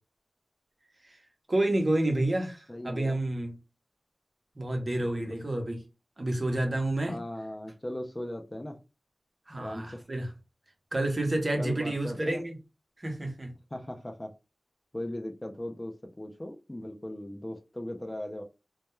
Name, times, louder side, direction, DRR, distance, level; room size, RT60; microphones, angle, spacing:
voice 1, 1.5-3.5 4.6-5.8 6.2-7.2 9.5-10.3 10.9-12.5 13.0-13.5, right 1 dB, 40° right, 0.7 m, -29 dB
voice 2, 2.7-3.2 5.0-5.4 7.1-8.8 9.6-10.1 11.6-12.4 13.7-14.3 14.9-18.4, left 1 dB, 20° left, 0.4 m, -38 dB
2.2 x 2.2 x 3.0 m
wide cardioid pair, 85°, 0 cm